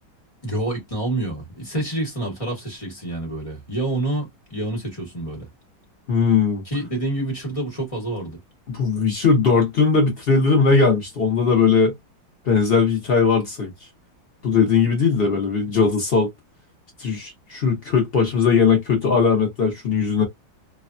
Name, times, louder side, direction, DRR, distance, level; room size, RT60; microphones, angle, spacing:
voice 1, 0.4-5.5 6.6-8.4 15.2-15.3, right 1 dB, 25° left, 0.8 m, -27 dB
voice 2, 6.1-6.6 8.7-11.9 12.4-13.7 14.4-16.3 17.0-20.2, left 5 dB, 70° left, 0.5 m, -19 dB
3.3 x 2.1 x 2.4 m
omnidirectional pair, 2.2 m